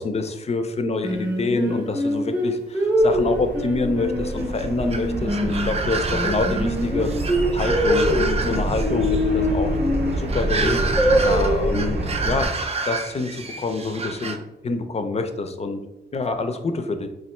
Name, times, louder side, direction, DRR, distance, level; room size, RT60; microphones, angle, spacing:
voice 1, 0.0-7.1 7.5-9.8 10.2-10.8 11.2-12.5 12.9-15.8 16.1-17.1, left 3 dB, 40° left, 7 dB, 0.4 m, -26 dB
Singing, 1.0-5.7 6.1-10.1 10.6-11.8, equal, 10° right, 0.8 m, -23 dB
sound 1, 3.0-12.5, right 1 dB, 85° right, 0.7 m, -28 dB
sound 2, 4.4-14.4, right 4 dB, 35° right, 0.4 m, -30 dB
3.0 x 2.5 x 4.3 m, 0.94 s
wide cardioid pair, 110°, 17 cm